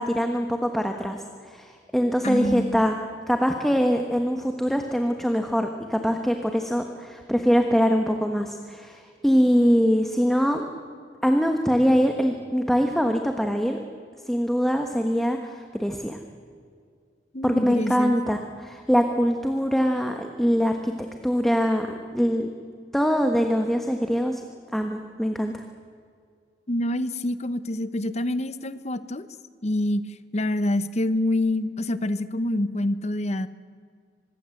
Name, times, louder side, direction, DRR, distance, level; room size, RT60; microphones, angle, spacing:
voice 1, 0.0-3.0 3.3-10.6 11.2-13.8 14.3-16.2 17.4-20.9 21.2-21.9 22.1-22.5 22.9-24.4 24.7-25.6, equal, ahead, 4 dB, 1.3 m, -23 dB
voice 2, 2.2-2.8 17.3-18.2 26.7-29.3 29.6-30.0 30.3-33.5, left 1 dB, 40° left, 13 dB, 1.0 m, -26 dB
25.0 x 21.5 x 7.9 m, 2.2 s
head